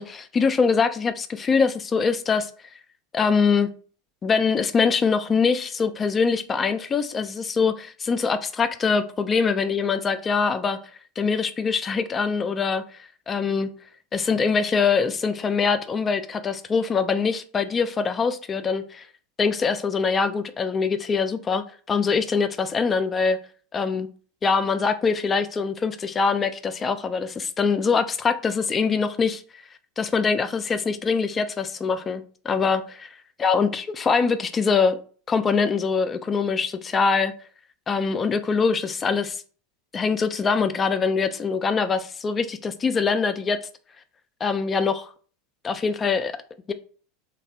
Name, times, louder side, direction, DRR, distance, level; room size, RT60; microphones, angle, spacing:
voice 1, 0.0-2.5 3.1-3.7 4.2-10.8 11.2-12.8 13.3-13.7 14.1-19.1 19.4-23.4 23.7-24.1 24.4-29.6 30.0-33.0 33.4-35.0 35.3-37.3 37.9-39.4 39.9-43.6 44.4-45.1 45.6-46.3 46.7-46.8, left 5 dB, 25° left, 0.3 m, -23 dB
3.1 x 2.2 x 2.7 m
hypercardioid pair, 85°, 0 cm